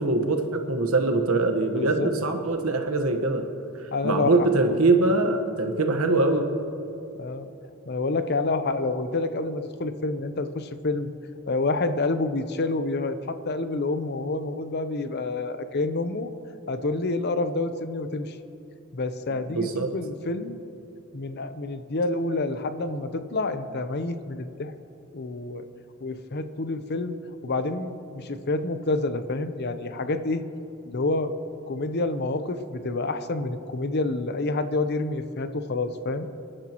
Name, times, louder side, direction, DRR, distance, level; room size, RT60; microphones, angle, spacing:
voice 1, 0.0-3.5 4.0-6.4 19.5-19.9, right 2 dB, 85° right, 5 dB, 1.3 m, -23 dB
voice 2, 1.7-2.1 3.9-4.5 7.1-7.5 7.9-11.1 11.5-16.3 16.7-18.4 18.9-20.6 21.1-24.7 25.1-25.6 26.0-27.2 27.4-30.4 30.9-31.3 31.7-36.3, left 2 dB, 50° left, 10 dB, 0.7 m, -28 dB
25.5 x 11.0 x 3.0 m, 2.7 s
head